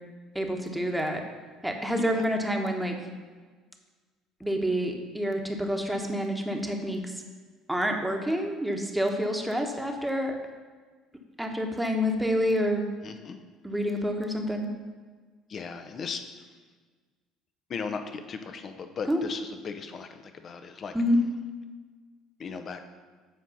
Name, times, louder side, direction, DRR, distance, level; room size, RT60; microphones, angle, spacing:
voice 1, 0.3-1.2 1.6-2.9 4.4-7.1 7.7-10.4 11.4-12.8 13.6-14.7 19.1-19.2 20.9-21.2, equal, 5° right, 3 dB, 1.2 m, -28 dB
voice 2, 13.0-13.4 15.5-16.2 17.7-20.9 22.4-22.8, left 5 dB, 45° left, 7 dB, 0.8 m, -37 dB
8.2 x 4.7 x 5.5 m, 1.4 s
hypercardioid pair, 60°, 0 cm